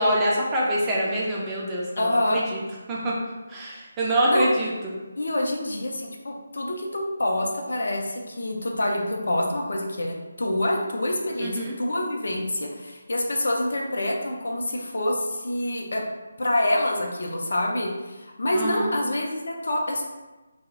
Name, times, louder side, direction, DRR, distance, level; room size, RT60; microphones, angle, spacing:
voice 1, 0.0-2.6 2.9-3.1 3.5-4.7 11.4-11.7 18.5-18.9, right 1 dB, 10° right, -6 dB, 0.4 m, -25 dB
voice 2, 2.0-2.4 4.3-4.5 5.2-16.0 16.4-20.0, left 1 dB, 60° left, 0 dB, 0.4 m, -26 dB
2.2 x 2.0 x 3.8 m, 1.2 s
figure-of-eight pair, 150°, 0 cm